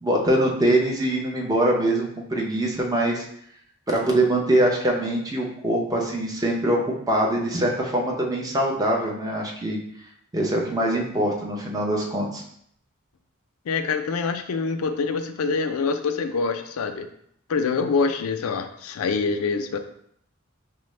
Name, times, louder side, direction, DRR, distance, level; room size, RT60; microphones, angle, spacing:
voice 1, 0.0-3.2 3.9-9.8 10.3-12.4, right 1 dB, 15° right, -1 dB, 0.6 m, -23 dB
voice 2, 13.7-17.1 17.5-19.8, left 4 dB, 85° left, 8 dB, 0.4 m, -25 dB
4.9 x 2.0 x 3.2 m, 0.69 s
head